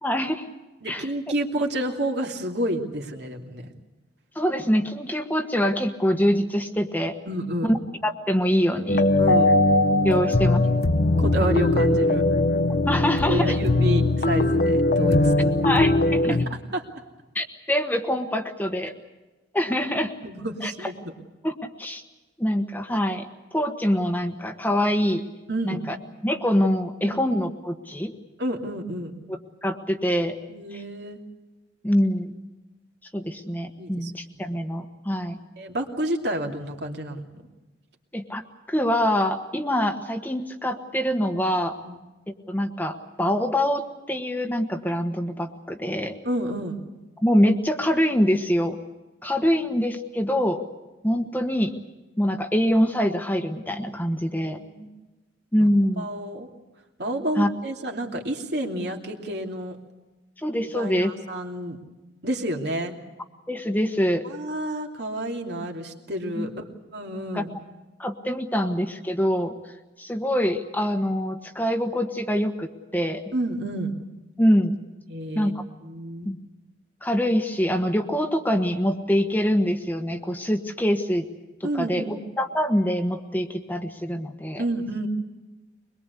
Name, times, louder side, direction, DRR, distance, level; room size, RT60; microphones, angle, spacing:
voice 1, 0.0-0.5 0.8-1.1 4.3-7.1 7.6-7.8 8.0-9.0 10.0-10.6 12.9-13.6 15.6-16.4 17.3-18.9 19.5-20.1 20.6-20.7 21.4-22.0 22.4-23.3 23.5-25.2 25.6-26.0 26.2-28.1 29.6-30.4 30.7-30.8 31.8-32.3 33.1-35.4 38.1-38.4 38.7-41.8 42.5-46.2 47.2-48.8 49.2-50.6 51.0-51.7 52.2-54.6 55.5-56.1 57.4-57.5 60.4-61.1 63.5-64.2 66.4-66.5 67.3-67.4 68.0-69.5 70.0-73.2 74.4-74.8 75.3-75.6 76.2-76.4 77.0-81.3 81.6-84.6, equal, 10° left, 6 dB, 1.2 m, -24 dB
voice 2, 0.8-3.7 7.3-7.8 9.2-9.5 11.2-12.2 13.3-15.6 16.3-16.9 20.2-20.9 25.5-25.9 27.0-27.2 28.4-29.2 30.5-31.2 33.8-34.1 34.4-34.5 35.6-37.3 41.8-42.0 46.2-46.8 54.3-54.9 55.6-55.7 56.0-56.5 57.0-59.8 60.6-61.8 62.2-63.0 64.2-66.6 66.9-67.5 73.3-73.9 75.1-75.5 75.8-76.3 81.6-82.2 84.6-85.1, right 1 dB, 65° right, 2 dB, 2.8 m, -29 dB
sound 1, 8.9-16.5, left 2 dB, 60° left, 1.2 m, -20 dB
23.0 x 22.0 x 8.3 m, 1.1 s
head